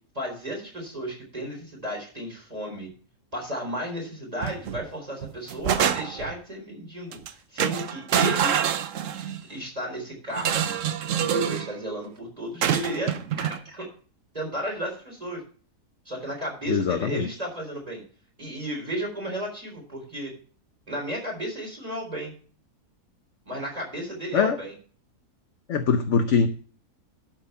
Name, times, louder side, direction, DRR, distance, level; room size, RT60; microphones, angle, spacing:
voice 1, 0.1-2.9 3.3-8.5 9.2-10.7 11.2-13.9 14.3-15.4 16.1-18.0 18.4-20.3 20.9-22.3 23.5-24.7, right 1 dB, 25° right, -1 dB, 4.0 m, -33 dB
sound 1, 4.4-4.8 5.2-6.3 7.1-7.3 7.6-9.4 10.3-11.7 12.6-13.6, right 9 dB, 60° right, 1.0 m, -26 dB
voice 2, 16.7-17.3 24.3-24.6 25.7-26.5, left 6 dB, 55° left, 7 dB, 1.0 m, -22 dB
12.5 x 6.2 x 5.5 m, 0.41 s
omnidirectional pair, 1.7 m